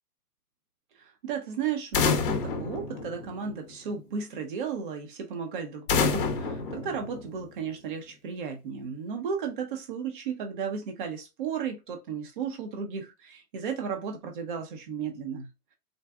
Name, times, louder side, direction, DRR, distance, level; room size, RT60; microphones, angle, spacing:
voice 1, 1.0-15.5, right 6 dB, 30° right, 0.7 m, -34 dB
sound 1, 1.9-3.7 5.9-7.7, left 5 dB, 35° left, 0.8 m, -28 dB
4.0 x 2.2 x 3.4 m
hypercardioid pair, 155°, 47 cm